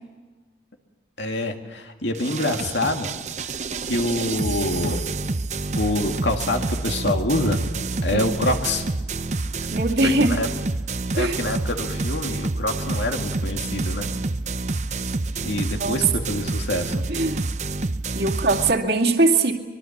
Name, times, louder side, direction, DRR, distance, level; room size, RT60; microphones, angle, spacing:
voice 1, 1.2-3.1 3.4-5.0 5.8-7.7 8.0-8.8 9.5-9.7 10.0-10.5 11.1-14.1 14.9-15.0 15.4-17.0, left 1 dB, 75° left, 4 dB, 2.3 m, -26 dB
sound 1, 2.1-18.7, right 3 dB, 40° right, 0.7 m, -28 dB
voice 2, 9.7-10.4 11.2-11.4 15.8-16.0 17.1-17.5 18.1-19.5, right 2 dB, 60° right, 1 dB, 2.3 m, -21 dB
24.5 x 22.5 x 7.3 m, 1.3 s
head